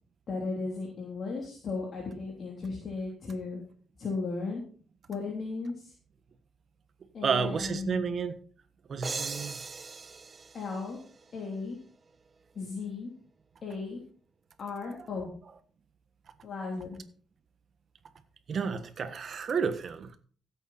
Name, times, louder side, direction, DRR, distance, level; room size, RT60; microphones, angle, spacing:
voice 1, 0.3-3.6 4.0-4.6 5.1-5.9 7.1-8.1 10.5-11.0 11.3-11.8 12.5-13.1 13.6-14.0 14.6-15.3 16.4-17.0, left 4 dB, 45° left, 3.4 m, -35 dB
voice 2, 7.2-8.4 8.9-9.6 18.5-20.2, right 6 dB, 45° right, 1.4 m, -31 dB
sound 1, 9.0-11.7, right 4 dB, 30° right, 1.0 m, -40 dB
16.0 x 8.2 x 4.3 m
cardioid pair, 130°, 0 cm